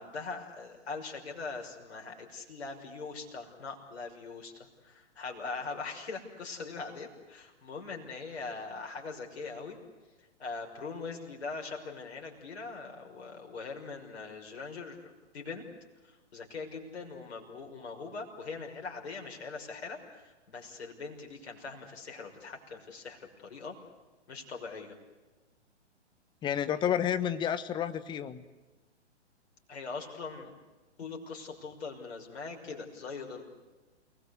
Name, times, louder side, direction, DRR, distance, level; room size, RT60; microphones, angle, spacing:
voice 1, 0.0-9.8 10.4-15.7 16.0-23.8 24.3-25.0 29.7-30.5 31.0-33.4, left 4 dB, 60° left, 1 dB, 6.2 m, -41 dB
voice 2, 26.4-28.4, left 9 dB, 15° left, 14 dB, 1.0 m, -30 dB
30.0 x 20.0 x 8.2 m, 1.2 s
figure-of-eight pair, 125°, 35 cm